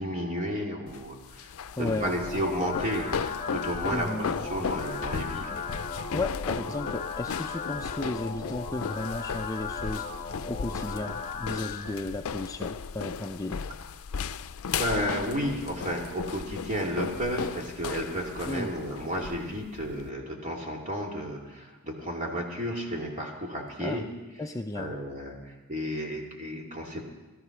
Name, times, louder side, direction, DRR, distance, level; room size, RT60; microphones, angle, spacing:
voice 1, 0.0-5.6 14.7-24.1 24.7-27.0, equal, 35° right, 0 dB, 2.7 m, -32 dB
sound 1, 0.9-20.1, left 6 dB, 85° left, 0.5 m, -36 dB
voice 2, 1.8-2.1 3.9-4.3 6.1-13.6 18.5-18.7 23.8-24.1 24.4-24.9, left 2 dB, 15° left, 5 dB, 0.4 m, -34 dB
sound 2, 1.9-11.9, left 5 dB, 35° left, 1.3 m, -37 dB
18.5 x 13.0 x 6.0 m, 1.2 s
head